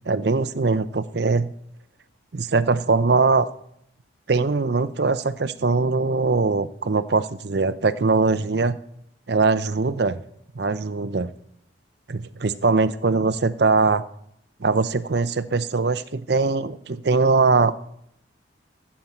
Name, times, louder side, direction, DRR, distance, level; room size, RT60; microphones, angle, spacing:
voice 1, 0.1-1.5 2.3-3.5 4.3-8.8 9.3-10.2 10.6-11.3 12.1-14.0 14.6-17.7, right 4 dB, 60° right, 14 dB, 0.6 m, -21 dB
14.5 x 8.6 x 4.4 m, 0.74 s
head